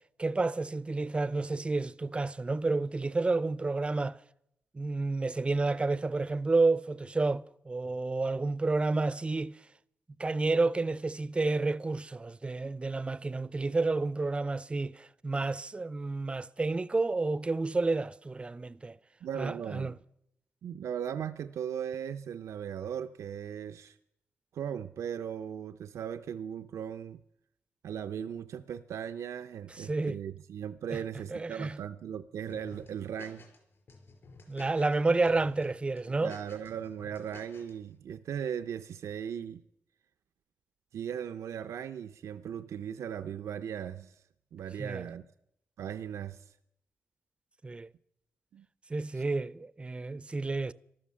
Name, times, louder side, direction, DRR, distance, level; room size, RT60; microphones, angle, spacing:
voice 1, 0.2-4.2 4.7-9.6 10.2-19.0 19.4-19.9 29.8-30.2 30.9-31.0 31.3-31.8 34.5-36.3 44.8-45.0 47.6-47.9 48.9-50.7, right 3 dB, 20° right, 0.5 m, -30 dB
voice 2, 19.2-20.0 20.6-24.0 24.5-27.2 27.8-33.4 36.1-39.6 40.9-44.2 44.5-45.2 45.8-46.6 48.5-48.7 49.1-49.2, right 8 dB, 80° right, 0.5 m, -38 dB
sound 1, 32.5-33.6 33.9-35.0 35.3-35.6 36.0-37.7, left 3 dB, 55° left, 4.8 m, -51 dB
13.5 x 12.0 x 7.5 m
cardioid pair, 110°, 5 cm